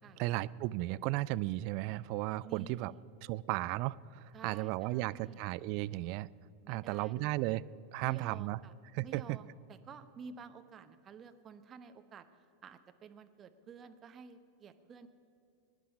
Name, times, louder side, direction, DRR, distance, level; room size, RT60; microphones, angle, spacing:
voice 1, 0.2-2.9 3.3-6.3 6.7-7.6 7.9-8.6 8.9-9.4, right 17 dB, 45° right, 17 dB, 0.3 m, -35 dB
voice 2, 2.4-3.0 4.3-5.4 6.6-7.5 8.0-8.7 9.0-12.2 12.6-15.1, right 6 dB, 30° right, 9 dB, 0.9 m, -51 dB
21.0 x 10.0 x 5.4 m, 2.7 s
figure-of-eight pair, 90°, 0 cm